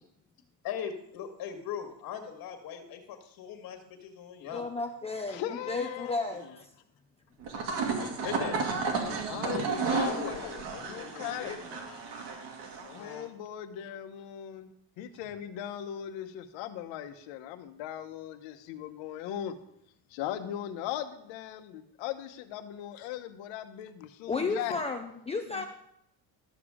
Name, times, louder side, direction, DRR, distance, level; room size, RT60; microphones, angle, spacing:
voice 1, 0.6-4.7 8.0-8.6 9.0-9.3 9.6-12.0 13.0-13.3 22.9-23.1, left 8 dB, 50° left, 5 dB, 1.8 m, -40 dB
voice 2, 4.5-6.7 24.3-25.7, left 3 dB, 15° left, 3 dB, 0.5 m, -33 dB
voice 3, 5.3-6.5 9.3-10.5 10.8-11.5 12.8-14.7 15.0-19.5 20.1-24.8 25.5-25.7, left 11 dB, 85° left, 8 dB, 1.1 m, -38 dB
sound 1, 7.4-13.2, right 4 dB, 65° right, 2.4 m, -33 dB
12.5 x 7.1 x 5.0 m, 0.77 s
cardioid pair, 150°, 44 cm